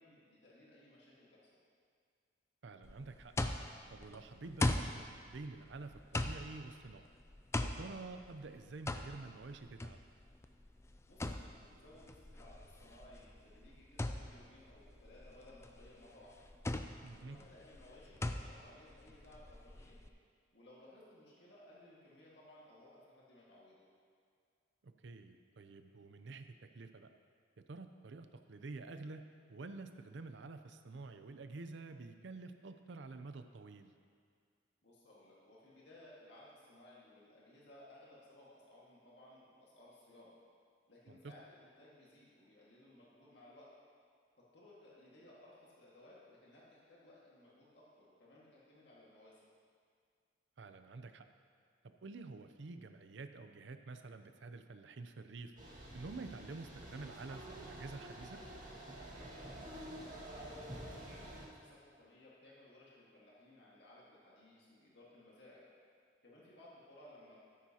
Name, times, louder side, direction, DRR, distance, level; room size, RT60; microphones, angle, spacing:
voice 1, 0.0-1.4 11.0-16.5 17.1-20.0 20.5-23.8 34.8-40.3 40.9-43.7 44.5-49.4 59.1-65.6 66.2-67.4, left 1 dB, 65° left, -6 dB, 1.8 m, -60 dB
voice 2, 2.6-3.3 3.9-7.1 7.6-10.0 17.0-17.4 24.8-27.1 27.7-33.9 41.1-41.3 50.6-51.2 51.8-55.5 55.9-58.4, right 3 dB, 70° right, 8 dB, 0.5 m, -49 dB
sound 1, 2.8-20.1, left 2 dB, 15° left, 0.3 m, -41 dB
sound 2, 55.6-61.5, right 1 dB, 45° right, 1.9 m, -49 dB
13.0 x 9.4 x 2.9 m, 2.2 s
head